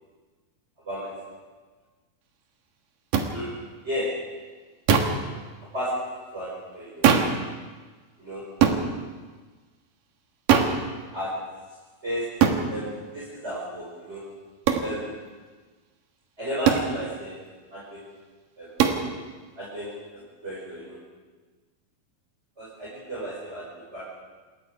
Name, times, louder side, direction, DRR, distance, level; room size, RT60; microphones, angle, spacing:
voice 1, 0.8-1.3 3.3-4.5 5.7-7.2 8.2-8.6 11.1-11.8 12.0-14.4 14.8-15.3 16.4-17.4 17.7-18.1 18.6-18.8 19.6-21.0 22.6-24.0, equal, 15° right, -7 dB, 5.4 m, -34 dB
sound 1, 3.1-3.3 4.9-5.2 7.0-7.4 8.6-8.8 10.5-10.8 12.4-12.6 14.7-14.9 16.6-16.9 18.8-19.0, right 7 dB, 70° right, 3.2 m, -20 dB
27.5 x 21.0 x 4.9 m, 1.4 s
omnidirectional pair, 4.1 m